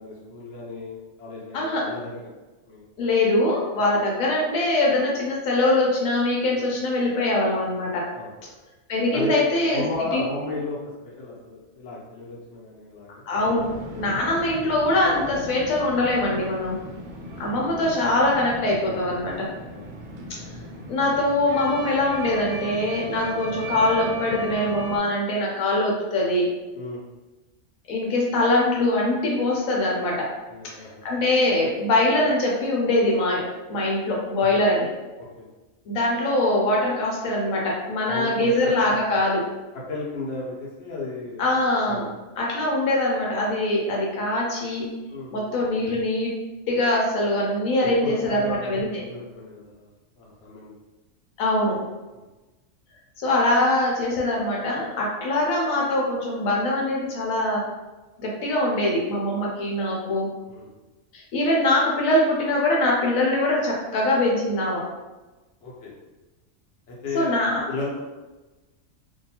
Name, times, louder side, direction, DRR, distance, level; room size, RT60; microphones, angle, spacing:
voice 1, 0.0-2.3 2.7-2.8 3.8-3.9 6.5-6.6 8.1-8.3 9.1-9.4 9.7-10.8 11.0-13.3 14.0-14.2 19.7-19.8 26.7-27.0 30.5-31.0 34.4-34.6 35.2-35.4 38.0-38.5 39.7-41.4 41.9-42.1 45.1-45.5 47.8-50.8 52.1-52.2 60.5-60.7 65.6-65.9 66.9-67.3 67.7-68.0, left 2 dB, 65° left, -4 dB, 1.0 m, -34 dB
voice 2, 1.5-1.9 3.0-8.1 8.9-9.8 10.1-10.2 13.2-16.8 17.4-19.5 20.9-26.5 27.9-30.3 31.0-34.9 35.9-39.5 41.4-42.1 42.4-44.9 45.3-46.3 46.7-49.0 51.4-51.8 53.2-57.6 58.2-60.3 61.1-64.8 67.1-67.6, left 1 dB, 85° left, -3 dB, 1.1 m, -23 dB
sound 1, 13.6-25.0, right 1 dB, 85° right, 0.4 m, -37 dB
2.6 x 2.2 x 2.8 m, 1.1 s
omnidirectional pair, 1.4 m